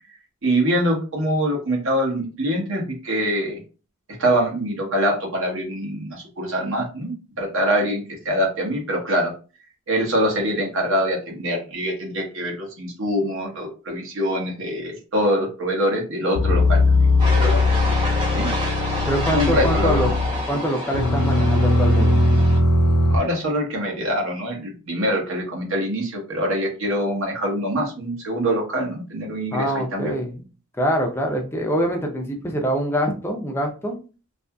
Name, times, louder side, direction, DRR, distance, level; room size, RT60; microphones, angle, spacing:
voice 1, 0.4-3.6 4.2-9.3 9.9-16.8 17.3-17.6 18.3-18.5 19.3-20.1 23.1-30.1, equal, 60° right, 1 dB, 0.9 m, -24 dB
sound 1, 16.3-20.5 20.9-23.2, left 2 dB, 80° left, 0.4 m, -19 dB
sound 2, 17.2-22.6, equal, 20° right, 0.7 m, -29 dB
voice 2, 19.1-20.1 20.5-22.1 29.5-30.4 30.8-34.0, equal, 10° left, 2 dB, 0.4 m, -24 dB
2.7 x 2.6 x 2.2 m, 0.35 s
head